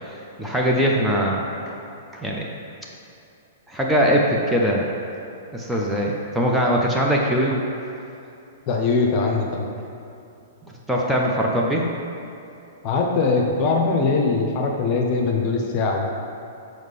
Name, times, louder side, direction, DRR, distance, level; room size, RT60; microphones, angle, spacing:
voice 1, 0.4-1.8 2.1-2.5 3.7-4.9 5.5-7.6 10.6-11.9, equal, 5° right, -3 dB, 0.6 m, -21 dB
voice 2, 8.7-9.7 12.8-16.1, left 4 dB, 40° left, 1 dB, 0.7 m, -21 dB
6.5 x 4.2 x 3.4 m, 2.6 s
figure-of-eight pair, 105°, 0 cm